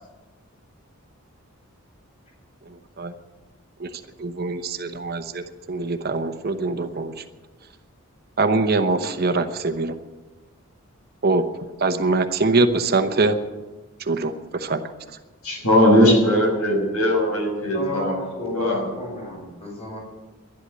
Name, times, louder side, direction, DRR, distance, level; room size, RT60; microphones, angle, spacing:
voice 1, 2.7-3.1 3.8-7.2 8.4-10.0 11.2-11.4 11.8-13.4 14.0-14.9, right 3 dB, 45° right, 8 dB, 0.9 m, -23 dB
voice 2, 15.4-18.1 18.5-18.8, equal, 80° left, 0 dB, 6.3 m, -19 dB
voice 3, 17.7-20.0, left 2 dB, 25° left, -3 dB, 6.8 m, -32 dB
11.5 x 11.5 x 9.3 m, 1.2 s
head